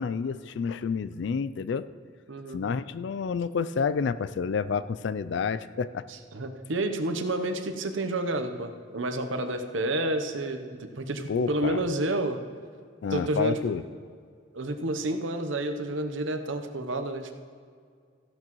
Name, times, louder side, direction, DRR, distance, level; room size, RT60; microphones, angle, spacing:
voice 1, 0.0-1.9 2.5-6.0 11.3-11.8 13.0-13.8, left 5 dB, 60° left, 15 dB, 0.3 m, -29 dB
voice 2, 2.3-2.6 6.1-12.4 13.1-13.6 14.5-17.3, right 1 dB, 70° right, 7 dB, 0.8 m, -30 dB
14.5 x 11.5 x 3.1 m, 2.1 s
head